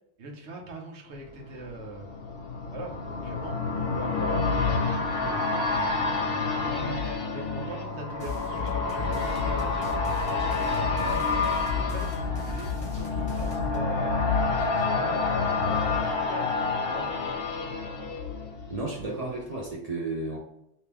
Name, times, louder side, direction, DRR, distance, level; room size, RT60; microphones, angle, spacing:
voice 1, 0.2-2.1 2.7-10.1 10.4-16.6 16.9-17.1, right 2 dB, 80° right, 1 dB, 1.1 m, -42 dB
sound 1, 1.2-19.0 19.4-19.5, left 4 dB, 60° left, 0.9 m, -28 dB
sound 2, 8.2-13.8, left 5 dB, 30° left, 1.1 m, -34 dB
voice 2, 18.7-20.4, right 2 dB, 40° right, -3 dB, 0.7 m, -33 dB
3.6 x 2.8 x 2.9 m, 0.81 s
omnidirectional pair, 1.1 m